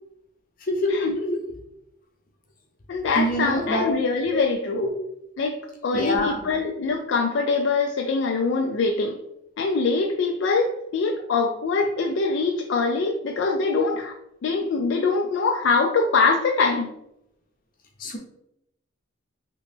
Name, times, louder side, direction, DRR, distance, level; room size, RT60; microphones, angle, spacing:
voice 1, 0.7-1.4 3.1-4.0 4.3-4.5 4.7-4.9 5.9-6.4 18.0-18.2, left 1 dB, 45° left, 1 dB, 0.7 m, -25 dB
voice 2, 2.9-4.9 5.4-9.2 9.6-14.2 14.4-16.9, left 4 dB, 65° left, 2 dB, 0.3 m, -23 dB
3.0 x 2.8 x 3.4 m, 0.81 s
head